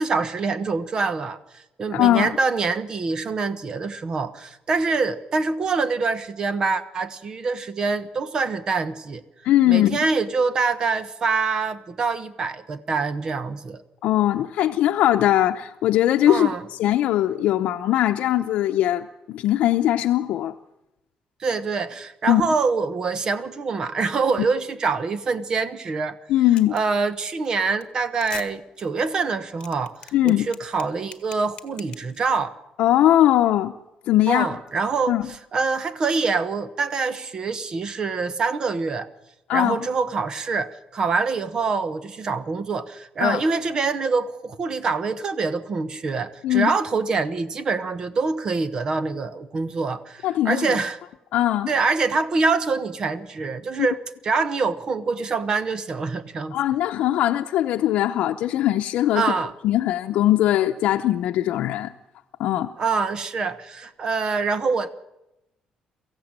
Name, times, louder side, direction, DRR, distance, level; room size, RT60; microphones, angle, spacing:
voice 1, 0.0-9.2 9.6-13.8 16.3-16.6 21.4-26.2 26.7-32.6 34.3-39.1 39.5-51.0 51.7-54.0 54.2-56.6 59.1-59.5 62.8-64.9, right 4 dB, 35° right, 1.2 m, -25 dB
voice 2, 1.9-2.3 9.4-10.0 14.0-16.5 16.8-20.5 22.3-22.4 26.3-26.8 30.1-30.5 32.8-33.7 34.1-34.5 35.1-35.3 39.5-39.8 43.2-43.4 46.4-46.7 50.2-50.7 51.3-51.7 56.5-59.3 59.6-61.9 62.4-62.7, left 13 dB, 80° left, 0.8 m, -20 dB
sound 1, 26.6-26.9 27.3-27.5 27.7-27.8 28.1-28.5 28.8-28.9 29.3-32.4, left 8 dB, 40° left, 1.4 m, -41 dB
23.0 x 15.0 x 8.9 m
cardioid pair, 170°, 2 cm